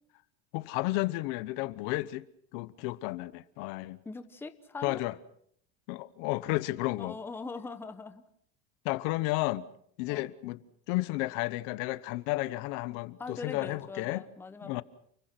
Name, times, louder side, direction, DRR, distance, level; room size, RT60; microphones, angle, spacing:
voice 1, 0.5-2.2 2.5-4.0 4.8-5.2 5.9-7.2 8.8-9.7 10.0-10.6 10.9-14.2 14.6-14.8, left 19 dB, 55° left, 1.0 m, -32 dB
voice 2, 4.0-5.0 7.0-8.2 10.1-10.2 13.2-14.8, left 4 dB, 5° left, 0.9 m, -41 dB
29.5 x 22.0 x 6.0 m
supercardioid pair, 165°, 34 cm